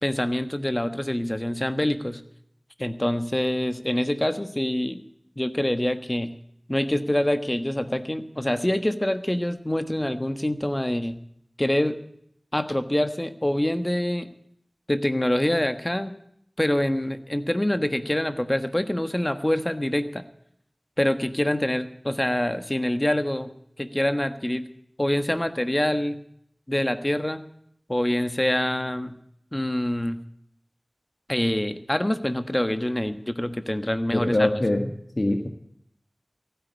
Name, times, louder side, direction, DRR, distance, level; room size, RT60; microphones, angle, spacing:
voice 1, 0.0-2.2 2.8-5.0 5.4-6.3 6.7-11.2 11.6-12.0 12.5-14.3 14.9-16.1 16.6-20.2 21.0-23.5 23.8-24.7 25.0-26.2 26.7-27.4 27.9-29.1 29.5-30.2 31.3-34.5, left 1 dB, 25° left, 10 dB, 1.4 m, -25 dB
voice 2, 34.1-34.9 35.2-35.5, left 1 dB, 50° left, 4 dB, 1.8 m, -23 dB
15.5 x 9.5 x 8.2 m, 0.70 s
wide cardioid pair, 40°, 0 cm